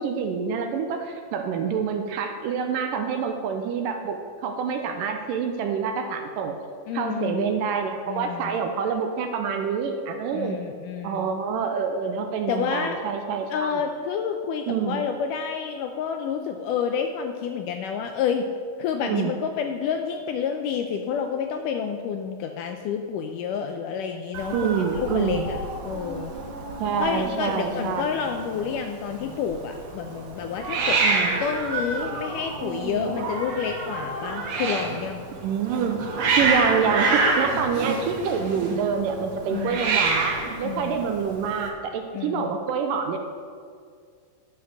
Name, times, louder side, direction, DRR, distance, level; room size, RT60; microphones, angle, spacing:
voice 1, 0.0-6.6 6.9-10.6 11.0-13.8 14.7-15.0 19.0-19.3 24.5-25.5 26.8-28.1 31.0-31.4 35.4-36.1 36.4-43.2, right 6 dB, 80° right, 5 dB, 2.2 m, -27 dB
voice 2, 6.9-7.5 8.1-8.6 10.3-11.3 12.5-13.0 13.5-18.5 18.8-26.3 27.0-31.0 31.4-35.2 39.5-39.8 40.6-41.0 42.1-42.5, left 7 dB, 80° left, 5 dB, 1.9 m, -29 dB
Hiss, 24.3-41.7, right 3 dB, 60° right, 1.9 m, -28 dB
11.5 x 5.8 x 6.4 m, 2.1 s
omnidirectional pair, 4.2 m